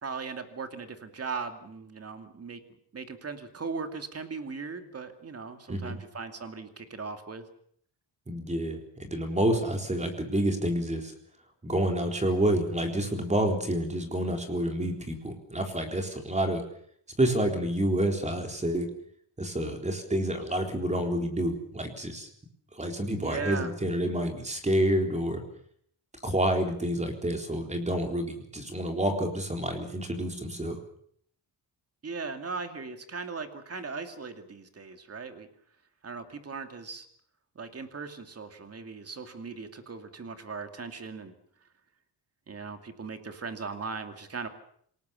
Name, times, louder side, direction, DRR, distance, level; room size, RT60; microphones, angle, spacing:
voice 1, 0.0-2.6 2.9-7.4 23.2-23.7 32.0-35.5 36.0-37.1 37.6-41.3 42.5-44.5, right 4 dB, 35° right, 7 dB, 2.6 m, -38 dB
voice 2, 8.3-11.1 11.6-16.6 17.2-18.9 19.4-22.3 22.8-25.4 26.2-30.8, right 1 dB, 15° right, 4 dB, 4.0 m, -28 dB
27.0 x 19.0 x 7.1 m, 0.64 s
wide cardioid pair, 150°, 43 cm